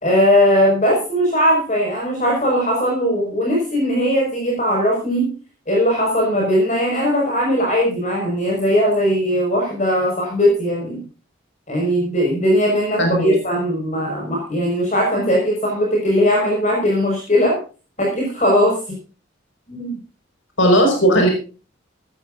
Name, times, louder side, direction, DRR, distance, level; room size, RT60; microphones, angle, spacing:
voice 1, 0.0-5.3 5.7-11.0 11.7-17.6 18.0-18.8 19.7-19.9, equal, 35° left, -1 dB, 5.8 m, -19 dB
voice 2, 13.0-13.4 20.6-21.3, equal, 70° left, 3 dB, 5.6 m, -15 dB
18.5 x 14.5 x 2.6 m, 0.36 s
head